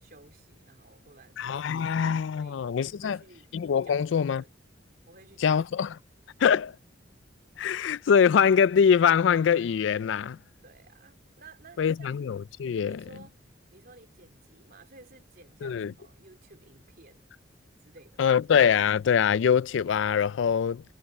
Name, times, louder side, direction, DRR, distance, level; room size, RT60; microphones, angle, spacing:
voice 1, 0.0-1.7 2.3-2.7 3.0-3.5 3.8-4.5 5.1-5.7 10.6-12.2 12.9-13.4 13.7-17.3 17.8-18.3, right 3 dB, 50° right, 3.2 m, -54 dB
voice 2, 1.4-3.2 3.5-4.4 5.4-5.9 6.4-6.7 7.6-10.4 11.8-13.0 15.6-15.9 18.2-20.8, left 7 dB, 70° left, 0.4 m, -23 dB
head